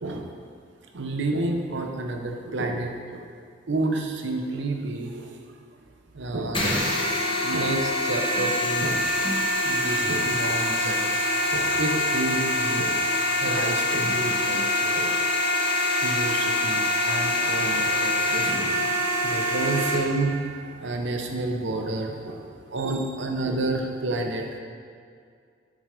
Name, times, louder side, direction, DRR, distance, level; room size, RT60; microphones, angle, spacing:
voice 1, 0.9-3.3 3.7-5.3 6.1-6.8 7.4-9.0 9.6-13.0 13.4-15.1 16.0-18.5 19.2-22.5 22.7-24.4, right 2 dB, 65° right, 3 dB, 0.7 m, -30 dB
sound 1, 6.5-20.0, left 1 dB, 25° left, 1.1 m, -25 dB
7.4 x 4.8 x 5.0 m, 2.2 s
head